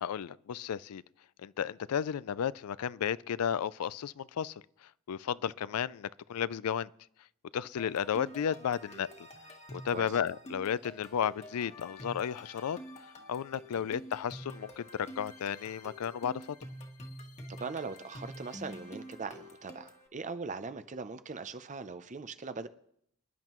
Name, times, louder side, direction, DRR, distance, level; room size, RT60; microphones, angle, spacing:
voice 1, 0.0-1.0 1.4-4.5 5.1-6.9 7.5-9.3 9.7-12.8 13.3-16.4, left 8 dB, 90° left, 0.4 m, -33 dB
sound 1, 7.8-20.1, equal, 30° left, 1.7 m, -48 dB
voice 2, 17.5-22.7, right 4 dB, 35° right, 0.6 m, -40 dB
25.0 x 11.0 x 3.0 m
head